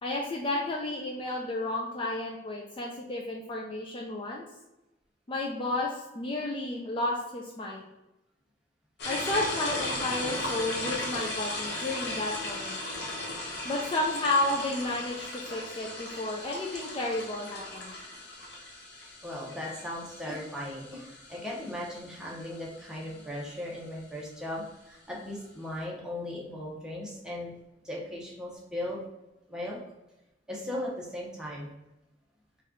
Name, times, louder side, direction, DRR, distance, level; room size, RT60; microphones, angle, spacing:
voice 1, 0.0-4.5 5.3-7.8 9.0-12.8 13.6-17.9, left 2 dB, 30° left, -1 dB, 0.4 m, -32 dB
sound 1, 9.0-23.4, left 1 dB, 60° left, 1.0 m, -37 dB
voice 2, 19.2-27.5 27.8-29.0 29.5-29.8 30.5-31.7, left 1 dB, 5° right, -4 dB, 0.9 m, -37 dB
4.1 x 2.4 x 3.6 m, 0.97 s
head